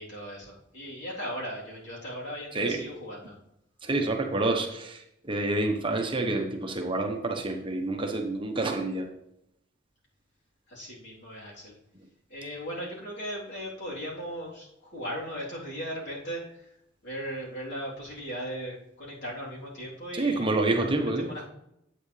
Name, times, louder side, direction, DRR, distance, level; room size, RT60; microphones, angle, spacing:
voice 1, 0.0-3.4 10.7-11.7 12.3-16.6 17.0-20.5 21.0-21.5, equal, 65° left, -6 dB, 3.5 m, -37 dB
voice 2, 3.8-9.1 20.1-21.3, right 2 dB, 25° right, 3 dB, 0.9 m, -28 dB
9.7 x 8.4 x 3.3 m, 0.80 s
head